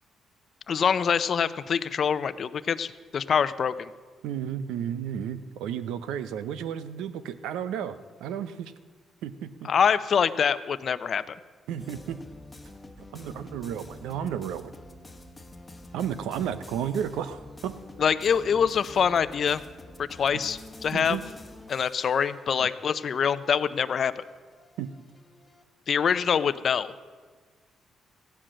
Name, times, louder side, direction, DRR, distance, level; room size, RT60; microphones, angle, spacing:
voice 1, 0.7-3.9 9.6-11.4 18.0-19.6 20.0-21.2 21.7-24.2 25.9-26.9, left 7 dB, 55° left, 14 dB, 0.6 m, -25 dB
voice 2, 4.2-8.7 9.2-9.7 11.7-12.2 13.1-14.7 15.9-17.8 20.9-21.2 22.6-22.7 24.8-24.9, right 9 dB, 90° right, 13 dB, 0.7 m, -33 dB
sound 1, 11.8-25.6, left 2 dB, 15° left, 1.2 m, -48 dB
15.5 x 10.0 x 6.3 m, 1.5 s
cardioid pair, 90°, 0 cm